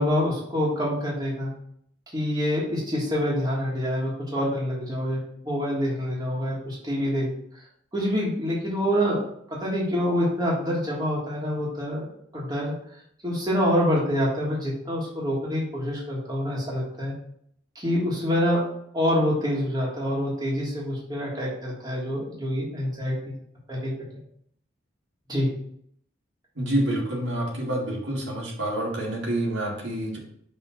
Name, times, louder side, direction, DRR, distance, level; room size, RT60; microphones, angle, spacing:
voice 1, 0.0-1.5 2.1-5.2 5.4-7.3 7.9-9.2 9.5-12.7 13.2-17.1 17.7-18.7 18.9-23.1 23.7-23.9 25.3-25.5, equal, 20° right, -5 dB, 1.6 m, -26 dB
voice 2, 26.6-30.2, right 1 dB, 75° right, -4 dB, 2.1 m, -27 dB
5.5 x 3.7 x 5.7 m, 0.68 s
head